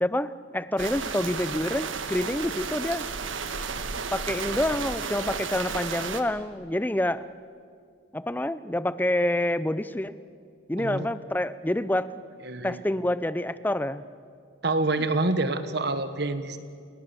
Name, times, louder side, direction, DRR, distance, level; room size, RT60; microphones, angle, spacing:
voice 1, 0.0-3.1 4.1-7.2 8.1-10.1 10.7-12.1 12.6-14.0, left 1 dB, 10° left, 15 dB, 0.5 m, -27 dB
sound 1, 0.8-6.2, right 5 dB, 75° right, 1.5 m, -33 dB
voice 2, 12.4-12.8 14.6-16.6, right 2 dB, 55° right, 10 dB, 1.4 m, -27 dB
30.0 x 18.0 x 7.1 m, 2.3 s
head